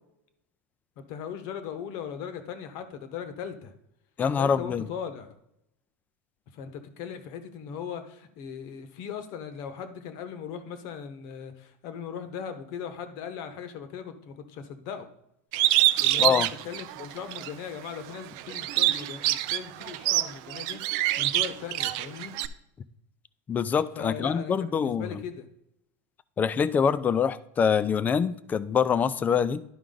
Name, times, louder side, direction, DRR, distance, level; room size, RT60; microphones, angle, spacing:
voice 1, 1.0-3.7 4.4-5.3 6.5-15.1 16.0-22.4 23.8-25.5, left 7 dB, 55° left, 9 dB, 1.1 m, -38 dB
voice 2, 4.2-4.9 16.2-16.5 23.5-25.1 26.4-29.6, left 7 dB, 20° left, 15 dB, 0.4 m, -25 dB
Bird, 15.5-17.5 18.0-22.5, right 15 dB, 55° right, 0.5 m, -25 dB
11.5 x 4.8 x 3.9 m, 0.77 s
supercardioid pair, 130°, 8 cm